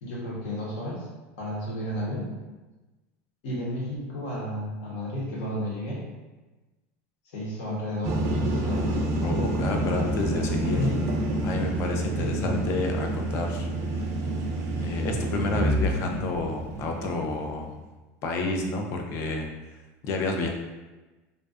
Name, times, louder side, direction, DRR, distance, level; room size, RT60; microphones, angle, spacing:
voice 1, 0.0-1.1 1.4-2.3 3.4-6.1 7.3-9.0 10.7-11.0 12.2-12.6, equal, 65° left, -5 dB, 0.9 m, -32 dB
sound 1, 8.0-17.8, right 1 dB, 45° right, 0.4 m, -28 dB
voice 2, 9.2-10.8 11.4-14.1 14.8-17.7 18.2-19.5 20.0-20.5, left 3 dB, 35° left, 2 dB, 0.3 m, -30 dB
2.4 x 2.2 x 2.4 m, 1.2 s
supercardioid pair, 160°, 7 cm